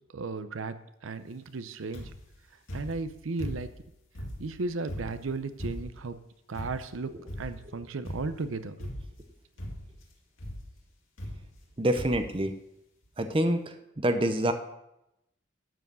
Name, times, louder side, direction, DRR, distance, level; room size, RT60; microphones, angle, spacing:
voice 1, 0.1-0.8 1.0-2.1 2.7-3.7 4.4-6.2 6.5-7.1 7.4-8.9, right 3 dB, 85° right, 12 dB, 0.6 m, -35 dB
sound 1, 1.9-2.3 2.7-3.8 4.1-6.1 6.5-7.0 7.3-7.7 8.1-8.5 8.8-9.3 9.6-10.0 10.4-10.7 11.2-11.7 12.0-12.3 13.0-13.1 13.3-13.4, equal, 85° left, 2.2 m, -39 dB
voice 2, 11.8-12.5 13.2-14.5, right 1 dB, 25° right, 8 dB, 0.6 m, -27 dB
12.0 x 4.7 x 6.1 m, 0.86 s
head